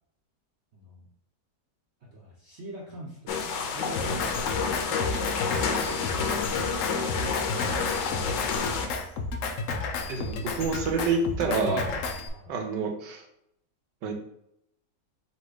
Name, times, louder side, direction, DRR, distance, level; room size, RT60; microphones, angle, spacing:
voice 1, 0.7-1.1 2.0-6.0 6.6-8.1 12.2-12.5, right 1 dB, 50° right, -4 dB, 0.9 m, -46 dB
sound 1, 3.3-8.9, left 5 dB, 90° left, 1.3 m, -29 dB
Drum kit, 3.9-12.3, left 3 dB, 70° left, 0.8 m, -32 dB
voice 2, 10.1-12.0 12.5-13.2 14.0-14.1, right 4 dB, 85° right, 3 dB, 1.5 m, -28 dB
4.2 x 2.6 x 4.7 m, 0.76 s
omnidirectional pair, 1.9 m